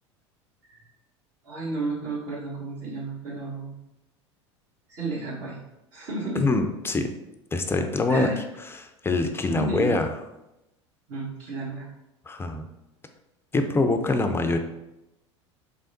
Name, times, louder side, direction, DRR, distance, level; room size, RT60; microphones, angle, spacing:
voice 1, 1.4-3.7 4.9-5.6 5.9-6.4 8.1-8.4 9.5-10.0 11.1-11.9, right 2 dB, 50° right, -6 dB, 1.2 m, -32 dB
voice 2, 6.3-7.1 7.5-8.3 8.8-10.1 12.3-12.7 13.5-14.6, left 3 dB, 15° left, 6 dB, 0.4 m, -24 dB
3.5 x 3.4 x 2.6 m, 0.92 s
hypercardioid pair, 80°, 15 cm